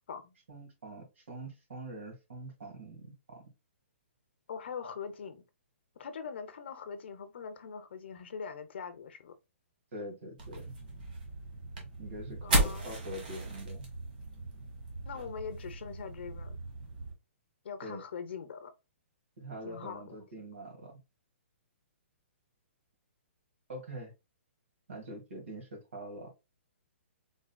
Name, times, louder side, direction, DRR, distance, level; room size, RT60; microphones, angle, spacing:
voice 1, 0.5-3.4 9.9-10.7 12.0-13.9 17.8-18.0 19.4-20.9 23.7-24.1 24.9-26.3, right 1 dB, 70° right, 2.2 m, -44 dB
voice 2, 4.5-5.4 6.0-9.4 12.4-12.9 15.0-16.6 17.6-18.7 19.6-20.2, left 6 dB, 55° left, 0.7 m, -42 dB
sound 1, 10.4-17.1, right 1 dB, 40° right, 1.4 m, -36 dB
3.9 x 3.6 x 2.2 m
hypercardioid pair, 170°, 7 cm